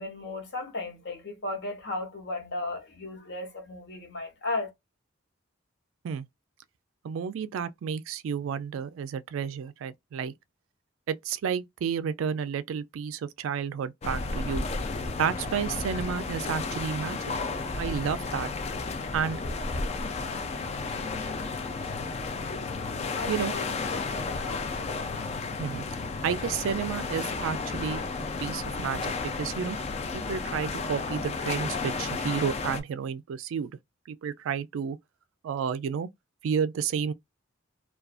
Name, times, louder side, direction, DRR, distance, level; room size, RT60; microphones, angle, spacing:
voice 1, 0.0-4.7 23.1-23.6 23.9-25.3, left 2 dB, 55° left, 0.9 m, -36 dB
voice 2, 7.0-10.3 11.1-14.6 15.2-17.2 17.8-18.5 19.1-19.4 23.3-23.5 25.6-25.8 26.2-28.0 28.4-29.8 30.1-33.7 34.1-35.0 35.4-36.1 36.4-37.1, right 7 dB, 80° right, 0.3 m, -31 dB
sound 1, 14.0-32.8, left 3 dB, 30° left, 0.3 m, -33 dB
2.4 x 2.3 x 2.3 m
head